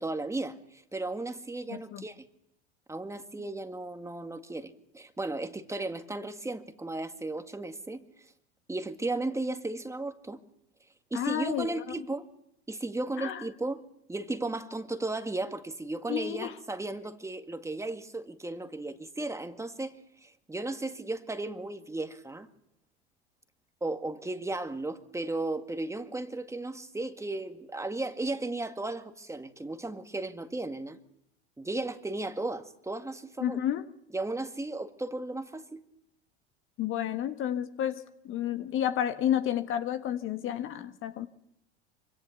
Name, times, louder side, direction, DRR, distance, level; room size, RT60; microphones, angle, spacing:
voice 1, 0.0-2.2 2.9-8.0 8.7-10.4 11.1-12.3 12.7-13.8 14.1-20.0 20.2-22.5 23.8-31.0 31.6-33.6 34.1-35.8, right 2 dB, 10° right, 2.0 m, -35 dB
voice 2, 1.7-2.0 11.1-12.1 13.2-13.4 16.1-16.5 33.4-33.9 36.8-41.3, left 10 dB, 40° left, 1.6 m, -31 dB
26.0 x 26.0 x 7.1 m
figure-of-eight pair, 80°, 33 cm